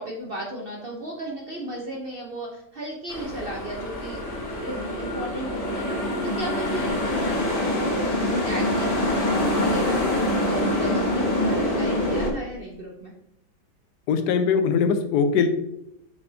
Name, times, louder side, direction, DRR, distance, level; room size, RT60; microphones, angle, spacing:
voice 1, 0.0-10.2 10.5-13.1, right 1 dB, 65° right, -1 dB, 0.5 m, -35 dB
sound 1, 3.1-12.3, left 1 dB, 30° left, 0.8 m, -25 dB
voice 2, 14.1-15.5, left 6 dB, 70° left, 8 dB, 1.0 m, -21 dB
6.9 x 5.1 x 2.7 m, 0.81 s
omnidirectional pair, 2.1 m